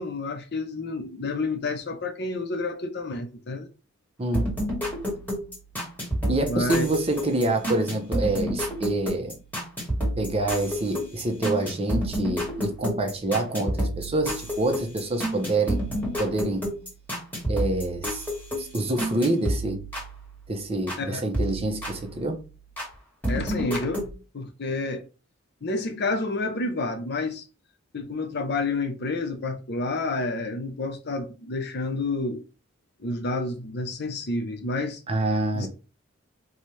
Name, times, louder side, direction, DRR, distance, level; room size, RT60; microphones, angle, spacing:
voice 1, 0.0-3.7 6.5-6.9 21.0-21.2 23.3-24.0 24.3-25.0 25.6-27.4 27.9-32.4 33.0-35.0 35.5-35.7, left 2 dB, 55° left, 0.7 m, -29 dB
voice 2, 4.2-4.5 6.3-9.3 10.2-15.8 16.2-16.6 17.5-18.2 18.6-19.8 20.5-22.4 35.1-35.7, right 2 dB, 30° right, 0.7 m, -26 dB
sound 1, 4.3-21.0 21.3-22.9 23.2-24.1, equal, 10° left, 1.5 m, -30 dB
4.3 x 2.3 x 3.2 m
head